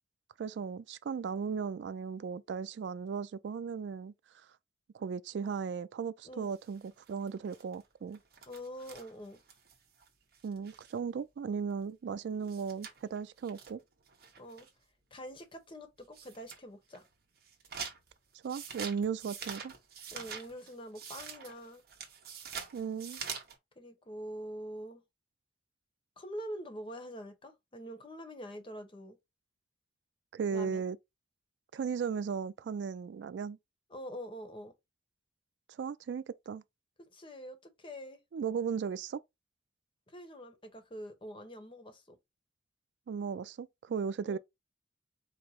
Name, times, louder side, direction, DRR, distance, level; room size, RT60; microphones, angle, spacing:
voice 1, 0.4-4.1 4.9-8.2 10.4-13.8 18.4-19.7 22.7-23.2 30.3-31.0 31.7-33.6 35.8-36.6 38.3-39.2 43.1-44.4, right 6 dB, 75° right, 0.3 m, -36 dB
sound 1, 6.5-11.0 11.4-11.5 11.7-11.8 12.1-12.2 12.4-14.8 15.4-15.5 16.0-16.6 16.9-23.6, right 7 dB, 60° right, 1.1 m, -46 dB
voice 2, 8.5-9.4 14.4-14.7 15.1-17.1 20.1-21.8 23.8-25.0 26.2-29.2 30.5-30.9 33.9-34.7 37.0-38.2 40.1-42.2 44.2-44.4, equal, 30° left, 0.9 m, -45 dB
4.8 x 2.0 x 4.2 m
head